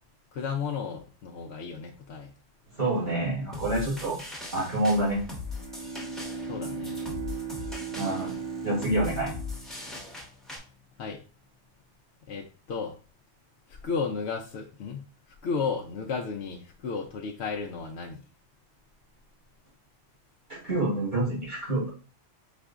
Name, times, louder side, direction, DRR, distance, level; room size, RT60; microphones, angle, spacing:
voice 1, 0.3-2.3 2.8-3.2 6.5-7.0 7.3-7.5 11.0-11.2 12.3-12.9 13.7-15.1 15.4-18.2, left 5 dB, 70° left, 1 dB, 0.8 m, -34 dB
voice 2, 2.8-4.2 4.5-5.2 7.9-8.3 8.6-9.3 20.5-21.9, right 1 dB, 40° right, -6 dB, 2.6 m, -27 dB
sound 1, 3.5-10.6, left 3 dB, ahead, 1.1 m, -40 dB
Bowed string instrument, 5.4-10.9, right 5 dB, 25° right, 0.7 m, -38 dB
4.9 x 4.3 x 2.3 m, 0.38 s
omnidirectional pair, 1.2 m